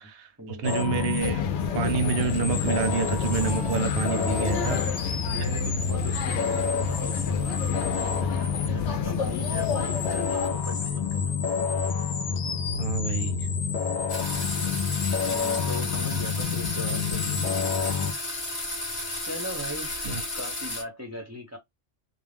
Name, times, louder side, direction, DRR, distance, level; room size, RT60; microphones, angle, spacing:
voice 1, 0.0-1.4 1.7-4.8 12.8-13.5 20.0-20.2, right 5 dB, 65° right, 0.8 m, -28 dB
sound 1, 0.6-18.1, left 6 dB, 55° left, 0.6 m, -28 dB
sound 2, 1.2-10.5, left 5 dB, 80° left, 0.9 m, -32 dB
voice 2, 4.0-4.9 5.3-11.4 15.2-17.8 19.2-21.6, equal, 20° right, 0.5 m, -39 dB
sound 3, 14.1-20.8, left 2 dB, 35° left, 1.0 m, -33 dB
2.4 x 2.1 x 3.3 m
omnidirectional pair, 1.2 m